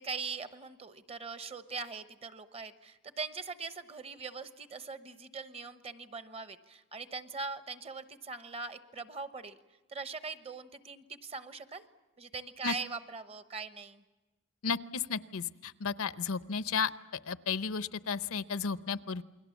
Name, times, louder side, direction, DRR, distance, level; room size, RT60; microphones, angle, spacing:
voice 1, 0.0-9.6 9.9-11.9 12.2-14.0, right 4 dB, 30° right, 11 dB, 1.0 m, -41 dB
voice 2, 14.6-16.9 17.3-19.2, left 6 dB, 75° left, 14 dB, 0.7 m, -33 dB
29.0 x 21.5 x 7.2 m, 1.1 s
head